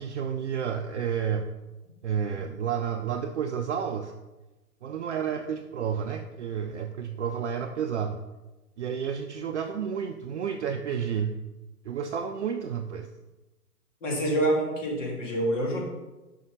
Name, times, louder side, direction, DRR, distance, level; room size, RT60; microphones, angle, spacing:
voice 1, 0.0-1.5 2.0-4.1 4.8-8.2 8.8-11.3 11.8-13.1, right 7 dB, 50° right, 5 dB, 0.5 m, -31 dB
voice 2, 14.0-15.8, right 1 dB, 50° left, -2 dB, 2.4 m, -26 dB
5.5 x 5.5 x 5.1 m, 1.1 s
figure-of-eight pair, 125°, 46 cm